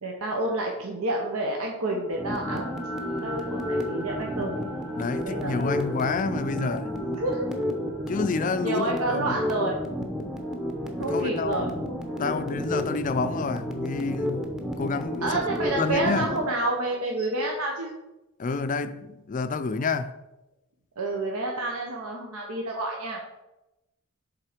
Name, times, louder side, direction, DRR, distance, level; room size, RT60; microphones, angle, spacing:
voice 1, 0.0-2.7 3.2-4.6 5.2-5.9 7.2-7.5 7.8-8.1 8.6-9.8 11.0-12.4 15.2-17.9 21.0-23.2, right 2 dB, 75° right, 0.9 m, -29 dB
sound 1, 1.9-12.1, right 1 dB, 60° right, 1.6 m, -41 dB
sound 2, 2.1-16.5, equal, ahead, 0.7 m, -31 dB
voice 2, 4.9-7.2 8.1-9.4 11.0-11.9 12.2-16.3 18.4-20.2, left 4 dB, 35° left, 0.4 m, -29 dB
7.3 x 3.8 x 5.0 m
head